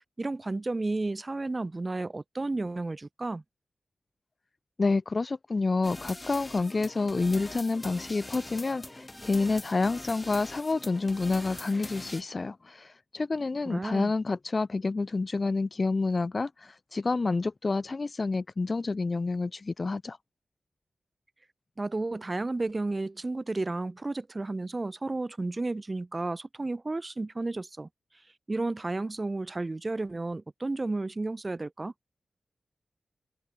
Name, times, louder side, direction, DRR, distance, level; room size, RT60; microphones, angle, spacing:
voice 1, 0.0-3.4 13.6-14.1 21.8-27.9 28.5-31.9, right 2 dB, 30° right, 1.1 m, -32 dB
voice 2, 4.8-20.2, left 3 dB, 40° left, 0.3 m, -28 dB
sound 1, 5.8-12.2, left 1 dB, 15° left, 0.7 m, -43 dB
wide cardioid pair, 105°, 0 cm